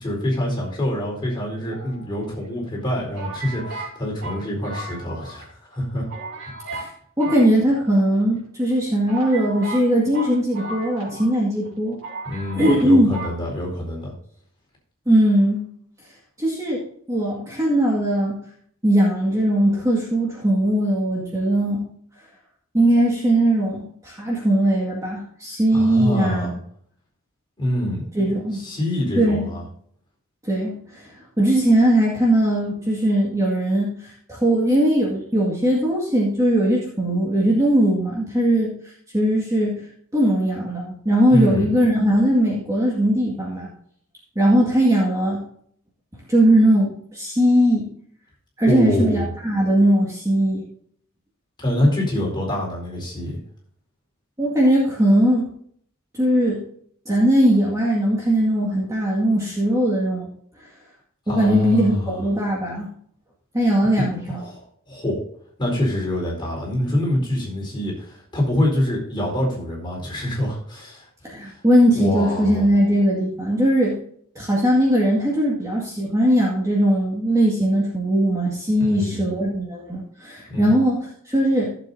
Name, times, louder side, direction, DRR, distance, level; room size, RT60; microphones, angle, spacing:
voice 1, 0.0-6.0 12.2-14.1 25.7-26.5 27.6-28.1 28.5-29.6 41.3-41.7 48.7-49.3 51.6-53.4 61.3-62.2 64.0-65.2 65.6-71.0 71.4-71.6 71.9-72.7 78.8-79.3 80.5-80.7, left 1 dB, 20° left, -3 dB, 4.3 m, -25 dB
sound 1, 1.7-2.5 3.1-5.4 5.7-5.8 6.1-6.9 7.2-8.2 8.7-8.8 9.1-11.4 11.6-11.7 12.0-12.8 13.1-13.3, right 2 dB, 65° right, 4.1 m, -35 dB
voice 2, 7.2-12.0 12.5-13.1 15.1-15.6 16.4-16.8 17.1-18.4 18.8-21.9 22.7-26.5 28.1-28.6 29.1-29.5 30.4-39.7 40.1-43.7 44.4-45.4 46.3-47.9 48.6-50.6 54.4-55.5 56.1-56.6 57.1-60.3 61.3-62.9 63.5-64.4 71.2-74.0 74.4-81.7, right 1 dB, 15° right, -4 dB, 2.0 m, -19 dB
15.5 x 7.6 x 2.8 m, 0.62 s
head